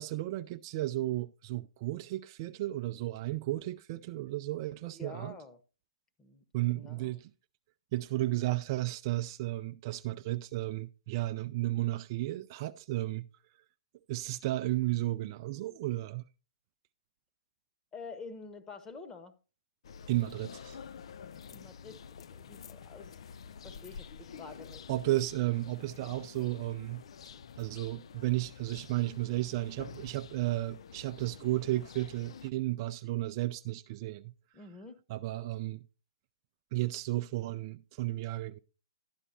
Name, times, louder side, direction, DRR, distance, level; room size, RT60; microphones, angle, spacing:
voice 1, 0.0-5.3 6.5-7.3 7.9-13.3 14.1-16.2 20.1-20.8 24.9-27.0 27.6-34.3 35.1-35.8 36.7-38.6, right 17 dB, 40° right, 0.4 m, -33 dB
voice 2, 4.8-5.6 6.2-7.2 17.9-19.3 21.5-22.0 22.3-24.8 34.5-35.0, left 4 dB, 15° left, 1.1 m, -48 dB
sound 1, 19.8-32.5, left 7 dB, 60° left, 0.4 m, -49 dB
12.5 x 9.9 x 2.7 m
figure-of-eight pair, 115°, 3 cm